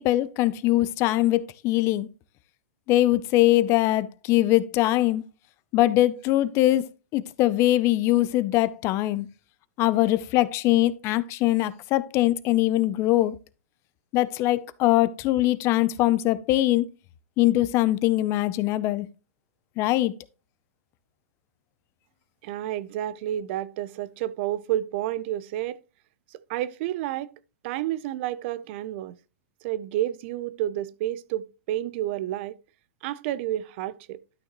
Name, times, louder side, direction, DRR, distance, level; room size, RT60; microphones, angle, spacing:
voice 1, 0.0-2.1 2.9-5.2 5.7-6.9 7.1-9.3 9.8-13.4 14.1-16.9 17.4-19.1 19.8-20.1, left 16 dB, 35° left, 0.5 m, -22 dB
voice 2, 22.4-25.8 26.3-27.3 27.6-29.2 29.6-32.5 33.0-34.2, right 13 dB, 50° right, 0.6 m, -30 dB
11.5 x 6.3 x 3.0 m
hypercardioid pair, 140°, 8 cm